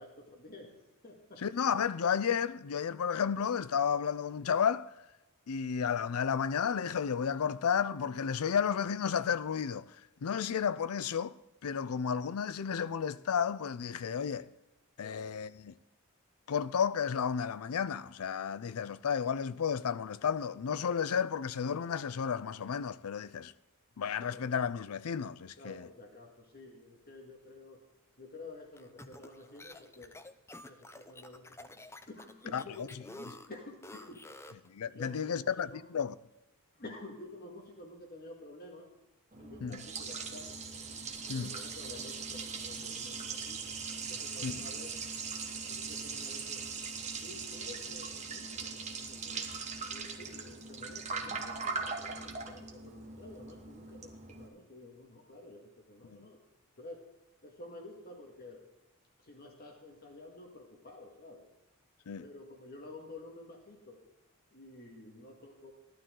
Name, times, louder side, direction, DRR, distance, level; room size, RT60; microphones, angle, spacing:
voice 1, 0.0-1.5 15.0-15.4 24.2-24.5 25.6-27.8 28.2-30.1 30.7-34.2 34.9-35.9 36.8-38.9 39.4-40.7 41.3-43.6 44.1-45.0 45.6-46.7 47.2-49.5 49.9-56.4 56.8-57.1 57.4-58.7 59.2-61.4 62.2-64.0 64.5-65.7, left 2 dB, 45° left, 1.9 m, -50 dB
voice 2, 1.4-4.9 5.5-9.8 10.2-11.3 11.6-14.5 15.0-15.7 16.5-23.5 24.0-25.9 32.5-32.6 34.7-36.1 39.6-39.8 41.3-41.5 44.4-44.6 62.1-62.2, left 7 dB, 85° left, 0.5 m, -32 dB
sound 1, 28.8-34.7, left 2 dB, 10° left, 0.6 m, -50 dB
Liquid, 39.3-54.5, right 5 dB, 30° right, 1.2 m, -40 dB
15.5 x 11.5 x 3.8 m
head